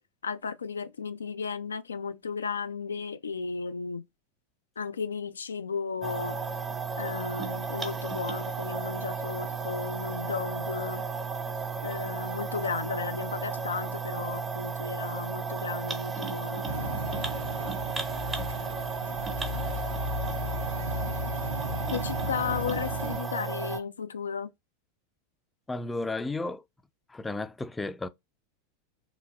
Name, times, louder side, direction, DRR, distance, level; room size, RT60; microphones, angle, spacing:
voice 1, 0.2-4.0 4.8-6.4 7.0-11.0 11.8-16.7 21.9-24.5, left 6 dB, 75° left, 0.3 m, -34 dB
sound 1, 6.0-23.8, right 5 dB, 20° right, 0.7 m, -34 dB
sound 2, 16.6-23.2, left 1 dB, 80° right, 0.5 m, -35 dB
voice 2, 25.7-26.6 27.1-28.1, left 2 dB, 10° left, 0.4 m, -33 dB
3.9 x 2.6 x 2.3 m
figure-of-eight pair, 85°, 0 cm